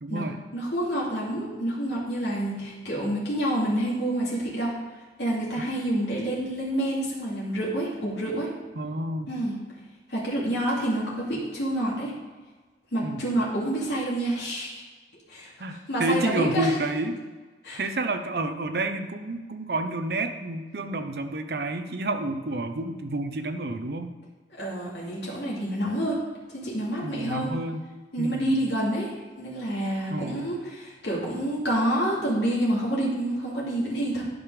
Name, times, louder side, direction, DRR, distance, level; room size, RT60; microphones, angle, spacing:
voice 1, 0.0-0.4 8.8-9.3 13.0-13.3 15.6-17.2 17.8-24.1 27.0-27.8 28.2-28.6 30.1-30.5, right 2 dB, 60° right, 7 dB, 0.7 m, -29 dB
voice 2, 0.5-4.7 5.2-8.5 9.3-9.6 10.1-12.1 12.9-14.8 15.3-16.7 17.6-17.8 24.6-26.2 26.5-27.5 28.1-29.1 29.4-34.2, right 1 dB, 80° left, -5 dB, 2.4 m, -28 dB
10.5 x 5.1 x 4.8 m, 1.3 s
head